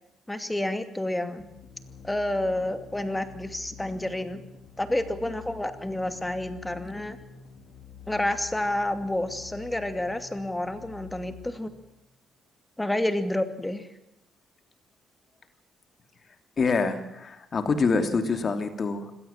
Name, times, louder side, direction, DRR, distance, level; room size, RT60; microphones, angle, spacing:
voice 1, 0.3-1.5 2.0-4.4 4.8-7.2 8.1-11.7 12.8-13.9, left 1 dB, 10° left, 9 dB, 2.5 m, -29 dB
sound 1, 1.4-12.1, left 7 dB, 75° left, 3.6 m, -48 dB
voice 2, 16.6-19.1, left 4 dB, 45° left, 7 dB, 3.0 m, -26 dB
25.5 x 17.5 x 7.5 m, 0.85 s
cardioid pair, 90°, 0 cm